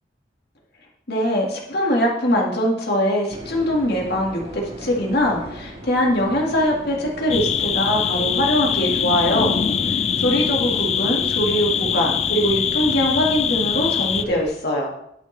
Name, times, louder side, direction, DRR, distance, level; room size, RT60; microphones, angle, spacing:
voice 1, 1.1-4.4 4.8-9.5 9.9-14.9, equal, 60° left, -1 dB, 1.9 m, -22 dB
sound 1, 3.3-14.5, right 1 dB, 35° right, 1.7 m, -38 dB
sound 2, 7.3-14.2, left 8 dB, 35° left, 0.3 m, -23 dB
11.5 x 6.0 x 3.3 m, 0.77 s
head